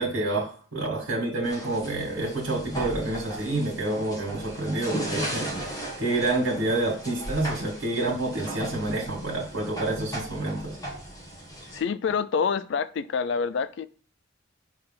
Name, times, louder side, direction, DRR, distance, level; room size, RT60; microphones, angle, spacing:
voice 1, 0.0-5.5 6.0-10.8, right 2 dB, 75° right, 2.0 m, -28 dB
sound 1, 1.4-11.8, right 1 dB, 15° left, 1.3 m, -37 dB
voice 2, 11.7-13.9, left 6 dB, 60° left, 0.4 m, -27 dB
5.7 x 3.3 x 5.7 m
head